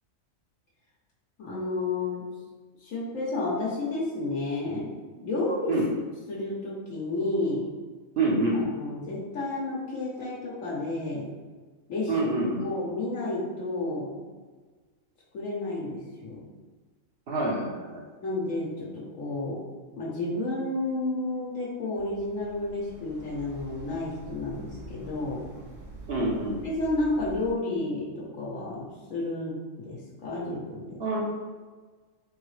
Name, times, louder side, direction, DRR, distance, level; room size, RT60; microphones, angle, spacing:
voice 1, 1.4-2.3 2.8-4.9 5.2-5.7 6.3-7.7 8.5-11.3 11.9-12.1 12.6-14.2 15.3-16.4 18.2-19.6 20.0-25.4 26.6-31.0, left 2 dB, 70° left, -5 dB, 1.2 m, -31 dB
voice 2, 8.2-8.6 12.1-12.7 17.3-18.0 26.1-26.6 31.0-31.2, right 2 dB, 50° right, -3 dB, 1.0 m, -26 dB
sound 1, 21.9-27.5, right 2 dB, 85° right, 1.6 m, -46 dB
3.8 x 3.5 x 3.2 m, 1.4 s
omnidirectional pair, 1.4 m